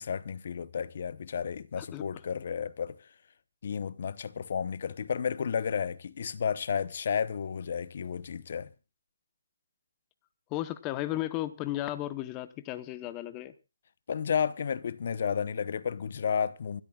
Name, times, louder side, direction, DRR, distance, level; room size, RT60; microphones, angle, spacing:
voice 1, 0.0-3.0 3.6-8.7 14.1-16.8, left 7 dB, 45° left, 0.9 m, -32 dB
voice 2, 10.5-13.5, left 15 dB, 15° left, 0.9 m, -34 dB
27.5 x 12.5 x 2.4 m
hypercardioid pair, 165°, 0 cm